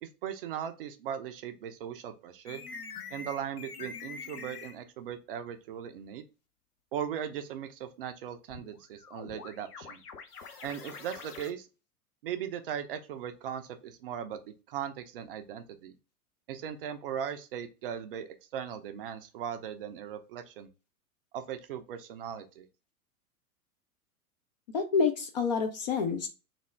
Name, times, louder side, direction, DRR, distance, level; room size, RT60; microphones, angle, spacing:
voice 1, 0.0-2.6 3.1-6.2 6.9-10.0 10.6-11.7 12.2-15.9 16.5-20.7 21.3-22.7, right 9 dB, 40° right, 8 dB, 0.4 m, -38 dB
sound 1, 2.5-4.8 8.5-11.5, left 5 dB, 85° left, 0.6 m, -45 dB
voice 2, 24.7-26.3, left 5 dB, 30° left, 6 dB, 0.4 m, -28 dB
3.3 x 2.3 x 3.2 m, 0.31 s
figure-of-eight pair, 95°, 44 cm